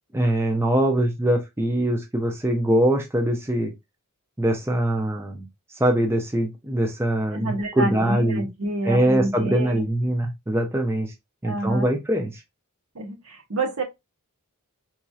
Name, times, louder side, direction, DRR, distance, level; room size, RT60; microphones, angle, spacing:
voice 1, 0.1-3.7 4.4-5.5 5.8-8.4 8.8-11.1 11.4-12.4, right 1 dB, 10° right, 0.4 m, -23 dB
voice 2, 7.3-9.8 11.4-11.9 12.9-13.8, right 2 dB, 70° right, 1.0 m, -28 dB
4.1 x 2.7 x 2.3 m
head